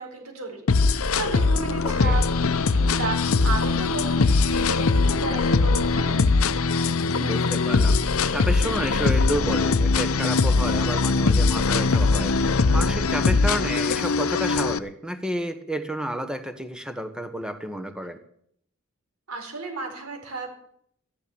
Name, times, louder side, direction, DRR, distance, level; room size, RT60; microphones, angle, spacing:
voice 1, 0.0-2.2 2.6-6.2 19.3-20.5, right 3 dB, 80° right, 2 dB, 4.2 m, -33 dB
sound 1, 0.7-14.8, left 4 dB, 75° left, 0.7 m, -21 dB
voice 2, 1.8-2.2 7.2-18.2, equal, 5° right, 8 dB, 1.2 m, -31 dB
14.0 x 11.5 x 7.1 m, 0.68 s
head